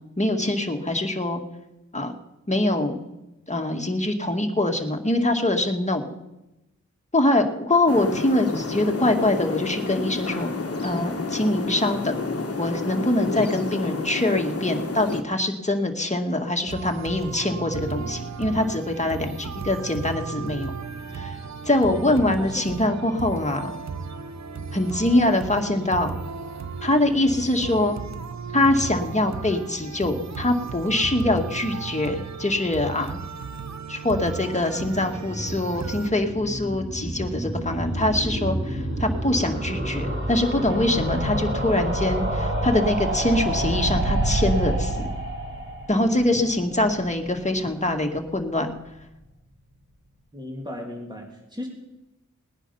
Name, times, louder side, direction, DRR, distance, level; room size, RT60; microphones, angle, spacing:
voice 1, 0.2-1.4 1.9-2.1 2.5-3.2 3.5-6.0 7.1-10.5 10.8-12.2 12.6-20.7 21.1-21.3 21.7-23.7 24.7-26.2 26.8-28.0 28.5-33.2 33.9-45.1 45.9-48.7, left 1 dB, 25° left, 3 dB, 2.0 m, -24 dB
sound 1, 7.9-15.2, left 3 dB, 50° left, 1.5 m, -30 dB
sound 2, 16.7-36.1, right 5 dB, 65° right, 1.0 m, -35 dB
voice 2, 21.9-22.5 50.3-51.7, left 1 dB, 15° right, 0 dB, 3.1 m, -36 dB
sound 3, 34.6-47.5 47.8-47.9 48.1-48.2 48.4-48.5, right 1 dB, 40° right, 3.4 m, -28 dB
19.5 x 9.9 x 5.7 m, 0.96 s
cardioid pair, 45°, 30 cm